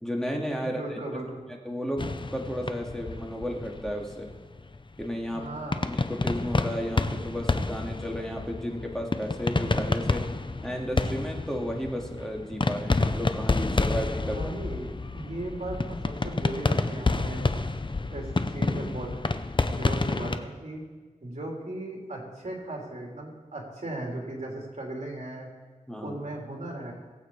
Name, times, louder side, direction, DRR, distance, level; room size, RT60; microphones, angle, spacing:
voice 1, 0.0-1.0 1.6-4.3 5.0-5.4 5.8-10.2 10.6-14.4 25.9-26.2, equal, 5° left, 0 dB, 2.3 m, -33 dB
voice 2, 0.6-1.5 5.3-5.9 14.1-17.4 18.1-19.1 19.8-20.8 21.2-25.5 26.0-26.9, right 1 dB, 55° right, -2 dB, 3.5 m, -37 dB
sound 1, 2.0-20.4, left 3 dB, 35° left, 0.7 m, -29 dB
18.5 x 8.3 x 4.8 m, 1.3 s
wide cardioid pair, 50°, 14 cm